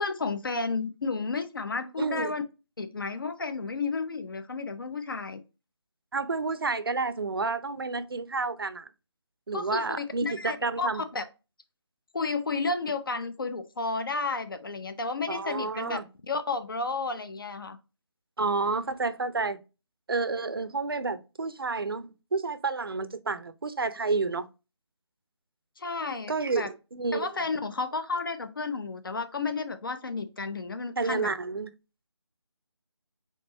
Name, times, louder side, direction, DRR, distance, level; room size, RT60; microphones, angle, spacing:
voice 1, 0.0-2.4 2.8-5.4 9.5-11.2 12.1-16.0 16.3-17.8 25.8-26.7 27.1-31.3, left 4 dB, 50° left, 0.7 m, -32 dB
voice 2, 2.0-2.3 6.1-8.9 9.5-11.0 15.3-16.1 18.4-19.6 20.1-24.5 26.3-27.3 31.0-31.7, right 4 dB, 55° right, 0.6 m, -30 dB
4.4 x 3.9 x 3.1 m
figure-of-eight pair, 170°, 15 cm